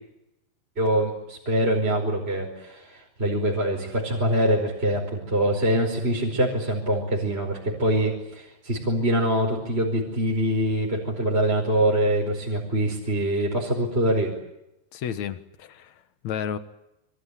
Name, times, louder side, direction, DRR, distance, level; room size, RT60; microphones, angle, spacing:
voice 1, 0.8-14.3, right 1 dB, 15° right, 0 dB, 4.7 m, -24 dB
voice 2, 14.9-16.6, left 8 dB, 60° left, 11 dB, 1.9 m, -32 dB
28.0 x 24.0 x 8.3 m, 0.89 s
omnidirectional pair, 5.2 m